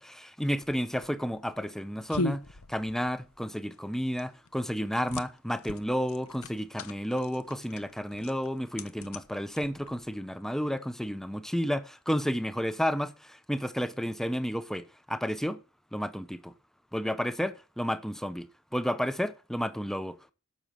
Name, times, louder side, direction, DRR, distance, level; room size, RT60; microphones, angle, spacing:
voice 1, 0.0-2.4 2.7-15.6 15.9-16.5 16.9-18.5 18.7-20.3, equal, ahead, 0.8 m, -31 dB
sound 1, 0.6-10.1, left 2 dB, 75° left, 0.9 m, -40 dB
12.0 x 6.3 x 7.4 m
head